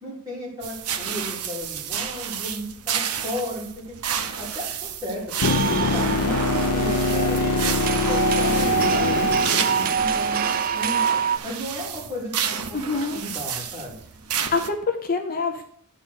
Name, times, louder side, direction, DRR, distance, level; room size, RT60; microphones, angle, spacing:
voice 1, 0.0-3.7 4.4-5.2 5.6-10.4 10.7-11.0 11.4-12.3 12.7-12.8 13.1-13.9, left 1 dB, 15° right, -6 dB, 3.5 m, -34 dB
sound 1, 0.6-14.7, right 7 dB, 80° right, 0.8 m, -31 dB
sound 2, 5.4-10.5 14.5-14.6, left 4 dB, 85° left, 0.6 m, -24 dB
sound 3, 5.4-11.4, right 7 dB, 40° right, 0.3 m, -25 dB
voice 2, 12.7-13.2 14.5-15.6, left 4 dB, 40° left, 5 dB, 0.7 m, -25 dB
9.9 x 3.9 x 6.5 m, 0.63 s
head